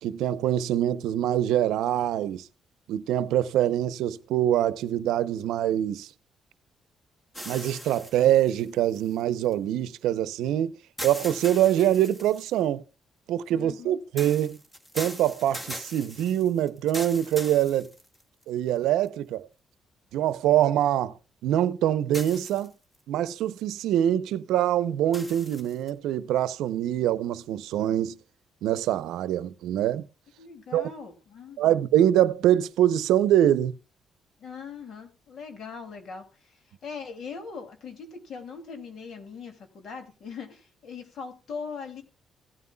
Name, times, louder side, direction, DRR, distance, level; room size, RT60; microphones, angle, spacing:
voice 1, 0.0-2.5 2.9-6.1 7.5-10.7 11.0-12.8 13.3-14.6 14.9-17.9 18.5-19.5 20.1-21.2 21.4-22.7 23.1-28.2 28.6-30.0 30.7-30.9 31.6-33.8, right 11 dB, 90° right, 0.6 m, -24 dB
sound 1, 7.3-9.5 11.0-12.6 14.2-18.4 19.1-19.2 22.1-23.0 25.1-25.9, equal, 15° left, 1.9 m, -40 dB
voice 2, 13.5-14.0 30.4-31.8 34.4-42.0, left 5 dB, 65° left, 2.5 m, -41 dB
16.5 x 9.5 x 2.3 m
cardioid pair, 90°, 0 cm